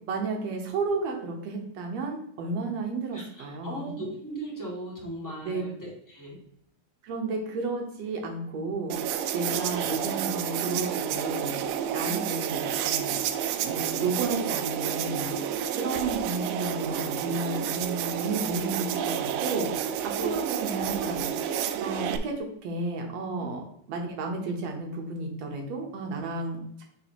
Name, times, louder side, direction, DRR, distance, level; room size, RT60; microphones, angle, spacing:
voice 1, 0.1-3.9 5.4-5.6 7.0-8.9 9.3-11.6 11.9-13.2 13.6-15.3 15.7-19.7 20.0-21.3 21.8-23.6 23.9-26.8, right 3 dB, 65° right, 2 dB, 1.8 m, -32 dB
voice 2, 3.1-6.4 12.0-12.3 20.2-20.3 23.4-23.5, right 1 dB, 10° left, -6 dB, 1.1 m, -37 dB
sound 1, 8.9-22.2, right 9 dB, 80° right, 2.2 m, -30 dB
9.5 x 4.1 x 2.9 m, 0.72 s
omnidirectional pair, 4.0 m